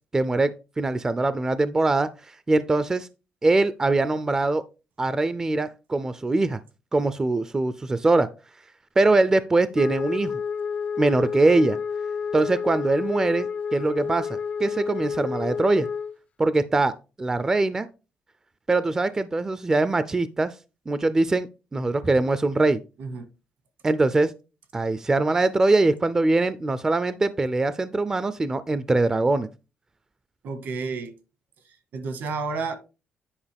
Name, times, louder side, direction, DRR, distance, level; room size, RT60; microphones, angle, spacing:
voice 1, 0.1-2.1 2.5-3.1 3.4-4.6 5.0-6.6 6.9-8.3 9.0-10.3 11.0-11.8 12.3-15.9 16.4-16.9 17.2-17.9 18.7-20.5 20.9-22.8 23.8-24.3 24.7-29.5, right 2 dB, 15° right, 0.4 m, -22 dB
Wind instrument woodwind instrument, 9.7-16.2, left 6 dB, 45° left, 0.4 m, -30 dB
voice 2, 30.4-31.1 31.9-32.8, right 4 dB, 75° right, 1.6 m, -30 dB
9.6 x 5.2 x 3.4 m
cardioid pair, 135°, 3 cm